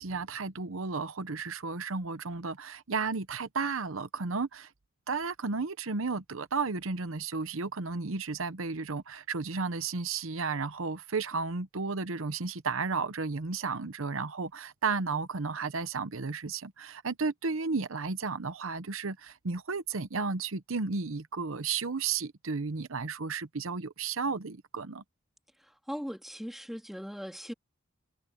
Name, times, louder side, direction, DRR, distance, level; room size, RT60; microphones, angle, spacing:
voice 1, 0.0-4.7 5.1-25.0, right 4 dB, 80° right, 0.9 m, -33 dB
voice 2, 25.6-27.5, equal, ahead, 2.6 m, -39 dB
head